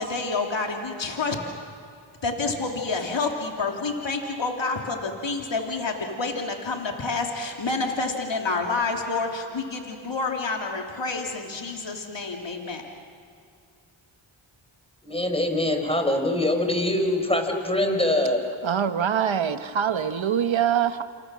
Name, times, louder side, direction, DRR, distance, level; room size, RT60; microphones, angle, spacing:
voice 1, 0.0-1.4 2.2-12.8, left 3 dB, 60° left, 1 dB, 3.1 m, -28 dB
voice 2, 15.0-18.4, left 1 dB, 10° left, 4 dB, 5.3 m, -23 dB
voice 3, 18.6-21.0, right 8 dB, 70° right, 9 dB, 1.3 m, -24 dB
28.5 x 28.5 x 6.4 m, 2.4 s
cardioid pair, 40°, 49 cm